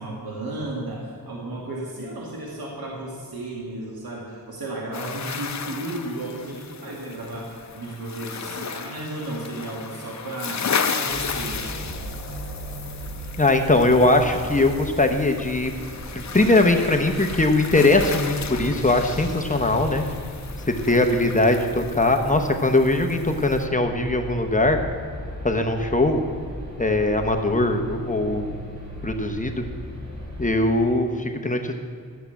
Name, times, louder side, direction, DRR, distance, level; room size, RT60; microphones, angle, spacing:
voice 1, 0.0-10.7 10.9-11.9, right 1 dB, 85° right, -2 dB, 2.1 m, -34 dB
sound 1, 4.9-23.7, left 6 dB, 50° left, 0.8 m, -34 dB
sound 2, 11.1-30.8, equal, 50° right, 3.8 m, -37 dB
voice 2, 13.4-15.7 16.1-20.0 20.7-24.8 25.4-26.2 26.8-28.5 29.0-29.6 30.4-31.7, left 2 dB, 20° left, 4 dB, 1.0 m, -20 dB
12.5 x 7.3 x 8.2 m, 2.3 s
wide cardioid pair, 95°, 36 cm